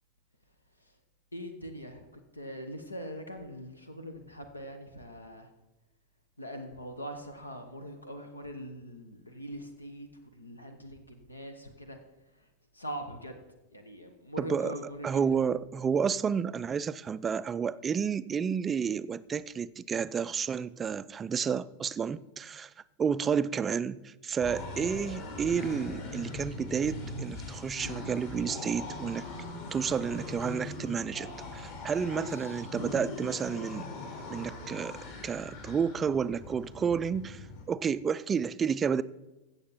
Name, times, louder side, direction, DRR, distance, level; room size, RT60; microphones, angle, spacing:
voice 1, 1.3-2.0 2.3-5.5 6.4-10.1 10.3-12.0 12.7-13.4 13.7-15.1 32.2-32.5, equal, 80° left, 1.0 m, -42 dB
voice 2, 14.4-14.7 15.0-22.7 23.0-29.3 29.7-33.9 34.3-39.0, right 6 dB, 20° right, 0.3 m, -31 dB
sound 1, 24.4-37.6, left 2 dB, 50° left, 2.4 m, -41 dB
15.5 x 7.0 x 4.2 m
figure-of-eight pair, 90°, 0 cm